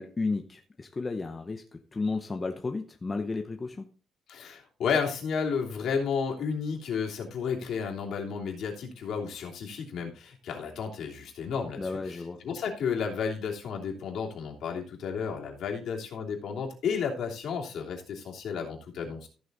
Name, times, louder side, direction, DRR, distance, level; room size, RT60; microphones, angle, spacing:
voice 1, 0.0-3.9 11.8-12.4, left 3 dB, 20° left, 5 dB, 0.8 m, -33 dB
voice 2, 4.3-11.8 12.4-19.3, left 6 dB, 60° left, 0 dB, 3.0 m, -32 dB
14.5 x 6.3 x 4.0 m, 0.36 s
cardioid pair, 175°, 0 cm